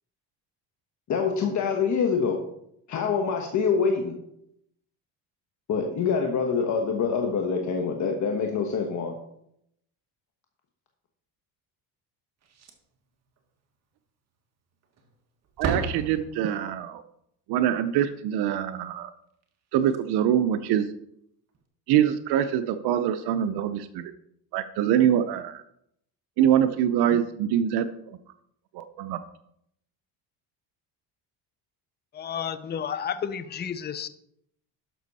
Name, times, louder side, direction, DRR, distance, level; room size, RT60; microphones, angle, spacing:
voice 1, 1.1-2.4 2.9-4.2 5.7-9.1, left 5 dB, 45° left, 1.2 m, -25 dB
Slam, 12.4-13.1 13.4-13.5 13.9-14.0 14.8-15.2 15.4-16.7 19.4-19.5 19.8-20.0 21.5-21.6, right 4 dB, 40° right, 1.5 m, -34 dB
voice 2, 15.6-17.0 17.5-19.1 19.7-20.9 21.9-24.1 24.5-25.6 26.4-28.2 28.7-29.2, right 10 dB, 70° right, 0.7 m, -24 dB
voice 3, 32.1-34.1, left 8 dB, 25° left, 0.6 m, -31 dB
12.0 x 6.2 x 4.1 m
cardioid pair, 120°, 40 cm